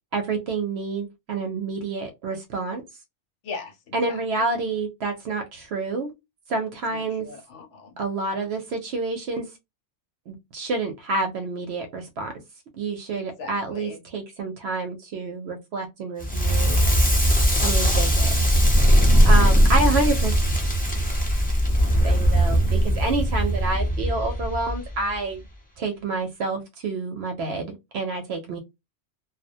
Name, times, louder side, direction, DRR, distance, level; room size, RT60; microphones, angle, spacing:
voice 1, 0.1-2.8 3.9-6.1 6.5-7.3 8.0-9.5 10.3-12.3 12.8-16.8 17.6-18.3 19.3-20.3 22.0-25.4 25.8-28.6, right 3 dB, 65° right, 0.8 m, -28 dB
voice 2, 3.4-4.4 6.9-8.0 13.1-14.1 19.2-19.5, left 4 dB, 75° left, 1.1 m, -40 dB
Crackle, 16.2-25.2, equal, 15° left, 0.3 m, -19 dB
2.3 x 2.0 x 2.6 m
omnidirectional pair, 1.2 m